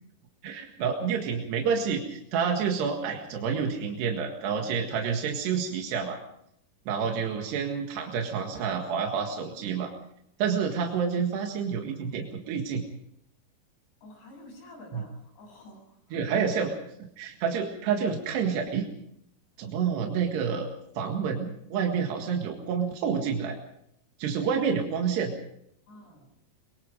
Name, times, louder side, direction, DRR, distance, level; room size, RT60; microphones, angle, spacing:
voice 1, 0.4-6.2 6.9-9.9 10.4-12.8 14.9-15.0 16.1-16.7 17.2-18.9 19.6-20.7 21.0-23.6 24.2-25.3, right 6 dB, 85° right, 2 dB, 3.9 m, -28 dB
voice 2, 14.0-16.2 25.9-26.3, left 1 dB, 90° left, 1 dB, 10.0 m, -49 dB
23.5 x 22.5 x 5.1 m, 0.75 s
omnidirectional pair, 4.7 m